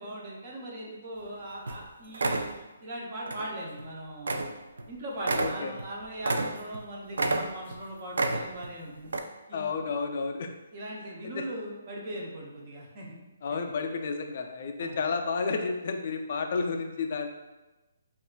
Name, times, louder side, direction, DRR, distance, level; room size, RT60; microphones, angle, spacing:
voice 1, 0.0-2.5 2.8-4.5 4.9-9.1 9.5-9.7 10.7-13.2 13.5-13.7 14.8-15.0, right 1 dB, 25° right, -3 dB, 0.6 m, -39 dB
sound 1, 1.2-1.4 1.7-1.8 2.1-2.5 3.3-3.5 3.8-3.9 4.3-4.5 4.8-4.9 5.2-6.8 7.1-7.8 8.1-8.7 9.1-9.2, right 2 dB, 85° right, 0.3 m, -29 dB
voice 2, 5.3-5.7 9.5-10.5 11.3-11.5 13.4-17.3, left 4 dB, 35° left, 4 dB, 0.3 m, -31 dB
5.1 x 2.4 x 2.2 m, 1.1 s
hypercardioid pair, 175°, 0 cm